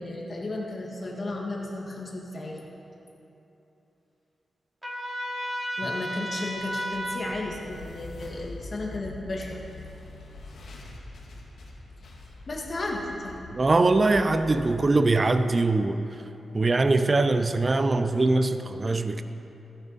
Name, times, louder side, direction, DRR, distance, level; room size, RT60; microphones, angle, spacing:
voice 1, 0.0-2.7 5.8-9.6 12.5-13.4, left 2 dB, 40° left, -1 dB, 1.8 m, -34 dB
Trumpet, 4.8-7.3, equal, 10° right, 2.5 m, -33 dB
sound 1, 6.5-15.7, left 2 dB, 80° left, 1.6 m, -44 dB
voice 2, 13.5-16.0 16.5-19.2, right 2 dB, 30° right, 10 dB, 0.4 m, -22 dB
14.0 x 9.5 x 4.1 m, 3.0 s
wide cardioid pair, 105°, 0 cm